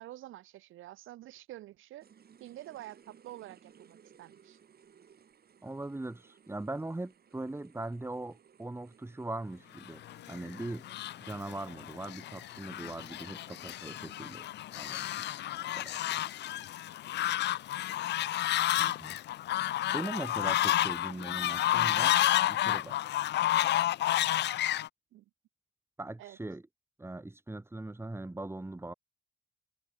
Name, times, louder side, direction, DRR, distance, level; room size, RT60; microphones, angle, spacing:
voice 1, 0.0-2.1 2.4-4.6 25.1-25.2 26.2-26.4, right 15 dB, 85° right, 4.9 m, -48 dB
sound 1, 2.0-17.1, right 7 dB, 50° right, 7.2 m, -62 dB
voice 2, 5.6-10.8 11.2-15.3 15.7-16.3 17.1-17.3 18.8-19.2 19.5-22.2 22.4-23.1 26.0-26.6 27.0-28.9, right 2 dB, 10° right, 3.1 m, -41 dB
Fowl, 10.1-24.9, left 13 dB, 60° left, 0.4 m, -31 dB
cardioid pair, 90°, 20 cm